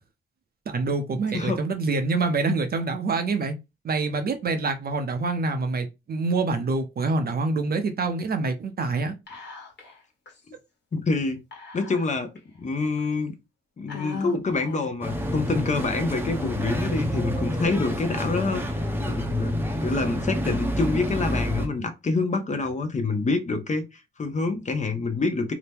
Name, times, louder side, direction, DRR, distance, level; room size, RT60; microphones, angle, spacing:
voice 1, 0.7-3.5 3.8-9.1, right 3 dB, 45° right, 0.6 m, -26 dB
Whispering, 9.3-10.0 10.3-10.4 11.5-12.4 13.0-13.1 13.9-15.1, left 3 dB, 55° left, 1.3 m, -38 dB
voice 2, 10.9-11.4 11.7-12.3 12.6-13.3 13.8-25.5, left 3 dB, 35° left, 0.7 m, -27 dB
sound 1, 15.0-21.7, equal, 10° right, 0.7 m, -28 dB
2.8 x 2.1 x 3.3 m
cardioid pair, 80°, 21 cm